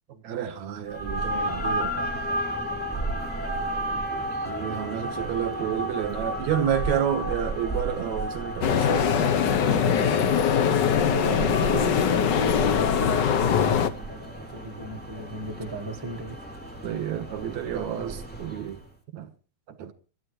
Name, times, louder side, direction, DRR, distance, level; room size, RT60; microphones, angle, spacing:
voice 1, 0.2-2.1 4.4-9.3 9.7-10.3 11.1-12.0 16.8-18.8 19.1-19.3 19.7-19.9, right 10 dB, 75° right, 2.8 m, -30 dB
sound 1, 0.9-18.8, right 1 dB, 5° left, 2.4 m, -33 dB
voice 2, 4.5-5.5 5.9-6.0 6.2-6.4 13.7-16.4, right 1 dB, 35° right, 0.3 m, -40 dB
sound 2, 8.6-13.9, left 7 dB, 75° left, 1.0 m, -22 dB
28.5 x 13.0 x 3.2 m
omnidirectional pair, 3.3 m